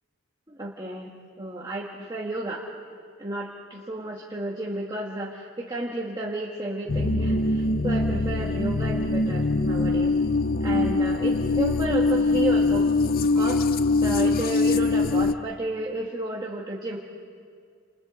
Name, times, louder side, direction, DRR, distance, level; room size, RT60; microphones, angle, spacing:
voice 1, 0.6-1.1 1.4-2.6 3.2-10.1 10.6-12.9 13.3-13.6 14.0-17.0, right 1 dB, 20° right, -3 dB, 1.5 m, -32 dB
sound 1, 6.9-15.3, left 3 dB, 45° left, 0.5 m, -23 dB
29.5 x 28.5 x 3.8 m, 2.1 s
head